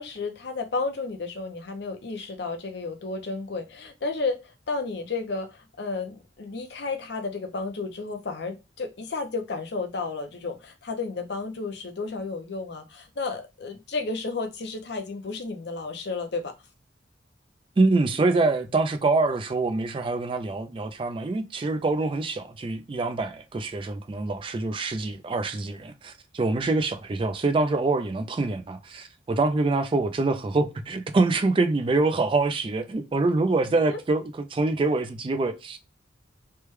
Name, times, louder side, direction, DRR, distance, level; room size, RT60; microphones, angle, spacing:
voice 1, 0.0-16.5 33.7-34.0, left 3 dB, 60° left, 0.6 m, -32 dB
voice 2, 17.8-34.2 34.5-35.8, right 3 dB, 25° right, 0.3 m, -25 dB
3.3 x 2.2 x 3.0 m
head